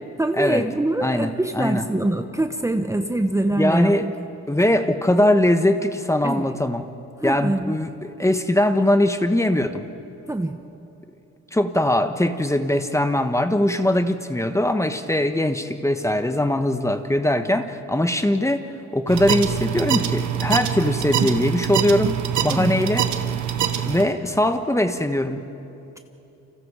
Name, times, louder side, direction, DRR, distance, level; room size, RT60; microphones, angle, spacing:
voice 1, 0.2-4.1 6.2-6.5 7.2-7.7 10.3-10.6 22.5-22.7, right 1 dB, 10° right, 6 dB, 1.1 m, -24 dB
voice 2, 1.0-1.8 3.6-4.1 4.5-6.9 7.2-9.8 11.5-18.7 18.9-23.1 23.9-25.4, left 1 dB, 10° left, 8 dB, 1.3 m, -21 dB
sound 1, 19.1-24.1, right 9 dB, 70° right, 1.4 m, -24 dB
29.5 x 26.5 x 4.9 m, 2.8 s
cardioid pair, 90°, 30 cm